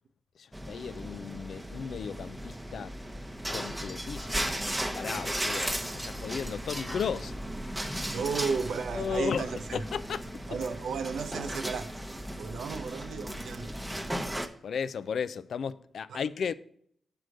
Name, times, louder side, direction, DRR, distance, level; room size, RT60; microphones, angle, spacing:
voice 1, 0.4-2.9 3.5-4.4 4.9-7.4 8.9-10.3 14.6-16.5, left 6 dB, 75° left, 0.4 m, -35 dB
sound 1, 0.5-14.5, right 1 dB, 10° right, 0.8 m, -36 dB
voice 2, 8.1-9.8 10.5-12.0 12.4-13.8 16.1-16.2, right 5 dB, 85° right, 0.6 m, -34 dB
6.1 x 4.8 x 6.4 m
cardioid pair, 70°, 0 cm